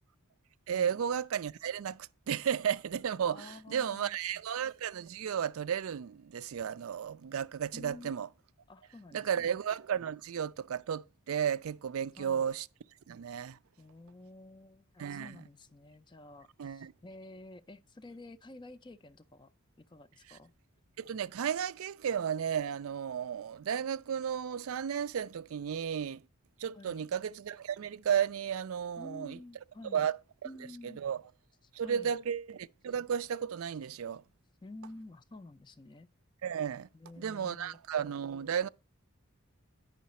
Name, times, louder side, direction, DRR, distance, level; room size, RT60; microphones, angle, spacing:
voice 1, 0.7-8.3 9.1-12.7 13.1-13.6 15.0-15.4 16.6-16.9 21.0-26.2 26.6-29.4 29.9-30.1 30.8-31.2 31.7-34.2 36.4-36.9 37.2-38.7, right 8 dB, 75° right, 0.4 m, -33 dB
voice 2, 3.3-4.2 7.7-8.1 8.7-9.6 12.2-12.6 13.8-19.5 19.8-20.5 26.7-27.1 29.0-30.1 30.4-31.0 31.6-32.2 34.6-36.1 36.9-37.8, left 2 dB, 20° left, 0.4 m, -50 dB
9.4 x 5.7 x 4.1 m
head